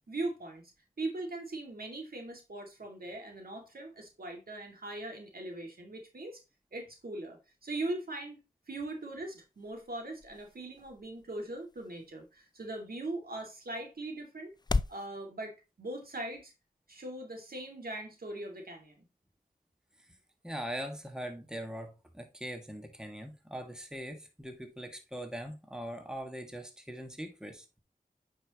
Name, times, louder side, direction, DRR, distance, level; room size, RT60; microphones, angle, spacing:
voice 1, 0.1-0.6 1.0-6.4 6.7-8.4 8.7-14.5 14.9-16.5 16.9-19.1, right 2 dB, 75° right, 2.3 m, -40 dB
sound 1, 8.8-15.1, left 3 dB, 30° left, 0.4 m, -40 dB
voice 2, 20.4-27.6, equal, 5° right, 1.7 m, -41 dB
8.8 x 5.3 x 3.0 m
wide cardioid pair, 55°, 15 cm